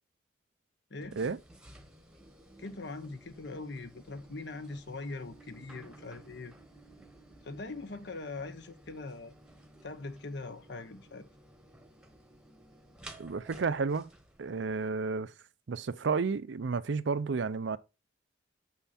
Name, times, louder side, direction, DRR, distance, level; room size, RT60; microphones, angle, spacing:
voice 1, 0.9-1.2 2.6-6.5 7.4-9.3 9.8-11.3, left 3 dB, 60° left, 0.9 m, -42 dB
sound 1, 1.0-14.9, right 1 dB, 5° right, 1.1 m, -55 dB
voice 2, 13.2-14.1 14.4-15.3 15.7-17.8, right 4 dB, 65° right, 0.5 m, -31 dB
7.1 x 5.7 x 4.2 m
head